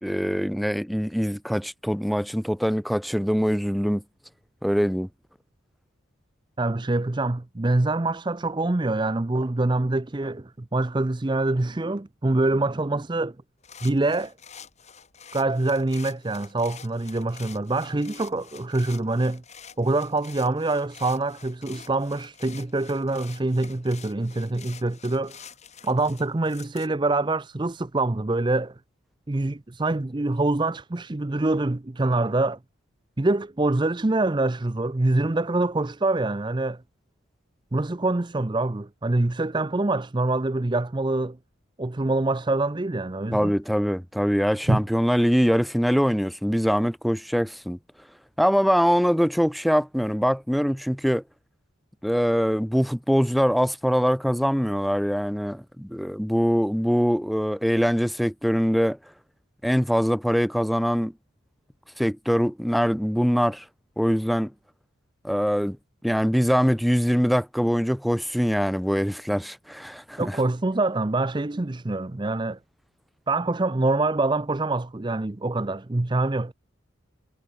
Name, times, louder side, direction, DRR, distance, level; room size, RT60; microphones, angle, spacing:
voice 1, 0.0-4.0 4.6-5.1 43.3-47.8 48.4-51.2 52.0-59.0 59.6-61.1 62.0-63.6 64.0-64.5 65.2-65.8 66.0-70.4, equal, ahead, 1.6 m, -23 dB
voice 2, 6.6-13.4 13.8-14.3 15.3-19.4 19.8-25.4 25.8-28.7 29.3-32.6 33.2-36.8 37.7-41.4 41.8-43.5 44.7-44.8 70.2-72.6 73.3-76.5, right 2 dB, 20° right, 0.5 m, -25 dB
sound 1, 13.6-26.9, left 7 dB, 30° left, 4.9 m, -47 dB
head